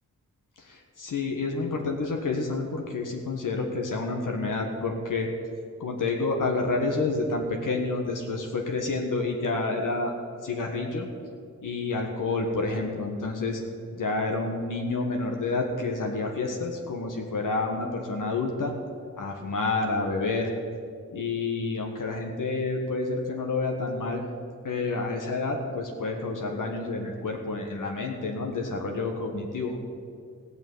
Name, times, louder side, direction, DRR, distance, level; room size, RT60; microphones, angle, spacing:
voice 1, 0.7-5.3 5.8-10.1 10.4-11.1 11.6-13.6 13.9-18.7 19.2-20.5 21.1-24.2 24.6-29.8, left 3 dB, 70° left, 2 dB, 1.5 m, -29 dB
16.0 x 6.1 x 9.2 m, 2.2 s
wide cardioid pair, 95°, 33 cm